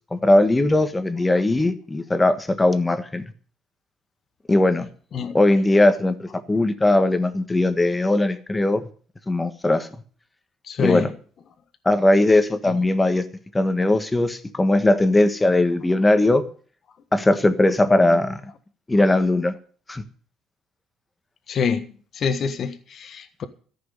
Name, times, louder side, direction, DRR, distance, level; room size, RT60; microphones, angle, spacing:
voice 1, 0.1-3.2 4.5-4.9 5.3-8.8 9.3-9.9 10.8-11.1 11.8-13.2 13.5-16.4 17.1-18.4 18.9-19.5 19.9-20.0, left 2 dB, 15° left, 1.4 m, -19 dB
voice 2, 10.6-11.1 12.7-12.8 21.5-21.9 22.1-23.4, left 6 dB, 45° left, 1.4 m, -26 dB
14.0 x 6.2 x 9.8 m
cardioid pair, 125°, 0 cm